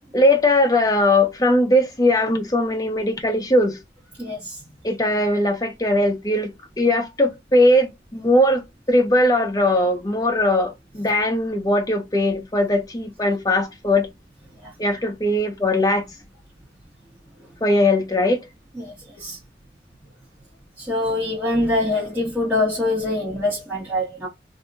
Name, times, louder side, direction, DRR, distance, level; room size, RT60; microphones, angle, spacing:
voice 1, 0.1-3.8 4.8-14.1 14.8-16.1 17.6-18.4, left 1 dB, 20° left, 0.7 m, -20 dB
voice 2, 4.2-4.6 14.6-14.7 18.8-19.4 20.8-24.3, left 2 dB, 10° right, 1.4 m, -24 dB
2.7 x 2.6 x 3.4 m
head